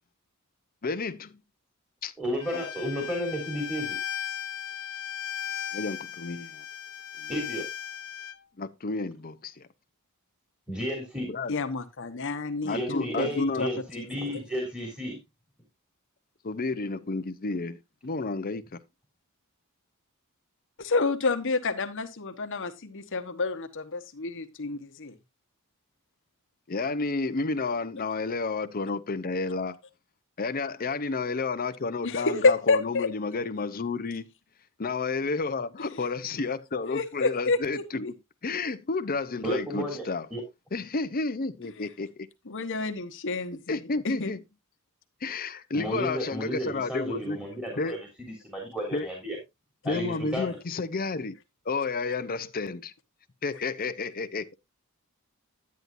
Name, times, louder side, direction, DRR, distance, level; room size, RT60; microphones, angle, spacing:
voice 1, 0.8-1.4 2.0-2.1 2.5-2.6 5.7-6.6 7.2-7.3 8.6-9.7 11.3-11.5 12.7-13.7 16.4-17.8 18.0-18.8 26.7-29.8 30.4-34.3 34.8-38.1 38.4-40.3 40.7-42.1 43.7-44.4 45.2-47.4 47.8-48.0 48.9-49.1 49.8-51.4 51.7-52.9 53.4-54.5, left 3 dB, 40° left, 0.7 m, -31 dB
voice 2, 2.2-4.0 7.3-7.6 10.7-11.3 12.6-15.2 39.4-40.0 40.3-40.4 45.7-49.4 49.8-50.6, equal, 5° right, 3.5 m, -32 dB
Bowed string instrument, 2.4-8.4, left 10 dB, 85° left, 0.9 m, -37 dB
voice 3, 11.5-13.7 14.0-14.1 20.8-25.1 32.0-33.1 36.8-38.1 42.5-44.3, left 3 dB, 60° left, 1.1 m, -29 dB
11.0 x 9.6 x 2.6 m
head